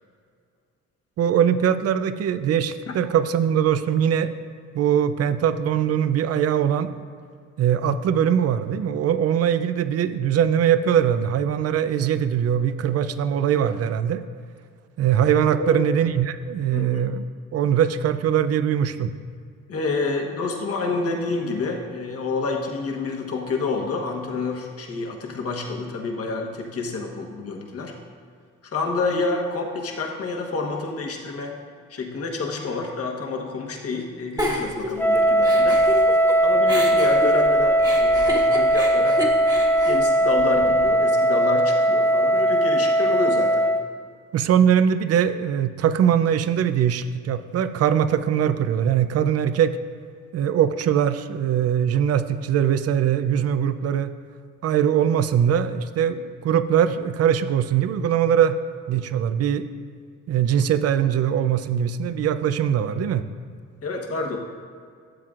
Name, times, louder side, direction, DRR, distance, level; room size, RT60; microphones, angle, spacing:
voice 1, 1.2-4.3 4.7-6.9 7.6-14.2 15.0-17.2 17.5-19.1 44.3-49.8 50.3-54.1 54.6-58.6 58.9-59.7 60.3-63.2, right 9 dB, 55° right, 12 dB, 0.5 m, -21 dB
voice 2, 16.7-17.0 19.7-27.9 28.7-31.6 31.9-35.8 36.4-39.2 39.9-43.7 63.8-64.4, left 3 dB, 50° left, 1 dB, 1.3 m, -28 dB
Giggle, 34.4-36.3 36.7-40.9, equal, 10° right, 1.3 m, -30 dB
Wind instrument woodwind instrument, 35.0-43.9, right 1 dB, 5° left, 0.5 m, -19 dB
12.5 x 7.5 x 2.5 m, 2.1 s
cardioid pair, 90°, 30 cm